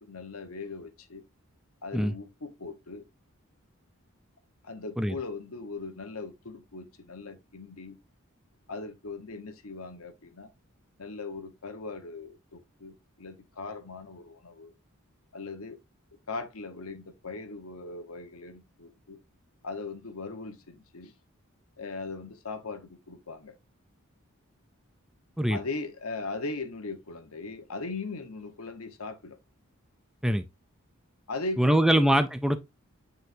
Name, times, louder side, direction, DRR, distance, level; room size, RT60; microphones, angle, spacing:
voice 1, 0.0-1.2 1.8-3.0 4.6-8.0 8.7-10.5 11.0-14.7 15.3-15.8 16.3-19.2 19.6-21.1 21.8-23.6 25.5-29.4 31.3-32.0, left 3 dB, 85° left, 1.2 m, -39 dB
voice 2, 31.6-32.6, right 1 dB, ahead, 0.4 m, -23 dB
7.9 x 4.4 x 2.6 m
head